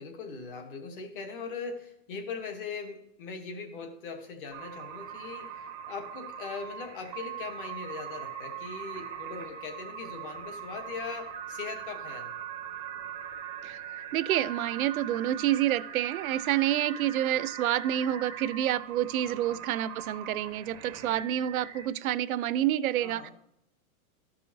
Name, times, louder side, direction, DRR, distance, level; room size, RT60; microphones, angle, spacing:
voice 1, 0.0-12.3 19.2-19.6 23.0-23.3, left 5 dB, 35° left, 6 dB, 1.2 m, -40 dB
sound 1, 4.5-21.9, right 8 dB, 20° right, 0.6 m, -41 dB
voice 2, 13.6-23.3, right 12 dB, 75° right, 15 dB, 0.6 m, -28 dB
13.5 x 5.5 x 2.8 m, 0.76 s
supercardioid pair, 175°, 43 cm